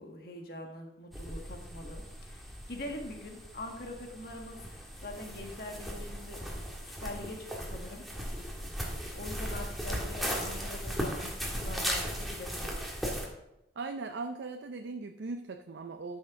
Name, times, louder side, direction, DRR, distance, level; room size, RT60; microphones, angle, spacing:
voice 1, 0.0-8.0 9.1-12.8, left 1 dB, 55° left, 2 dB, 1.6 m, -44 dB
sound 1, 1.1-13.3, equal, ahead, 1.5 m, -37 dB
voice 2, 13.8-16.2, right 3 dB, 75° right, 6 dB, 0.5 m, -39 dB
12.5 x 6.3 x 3.7 m, 0.88 s
head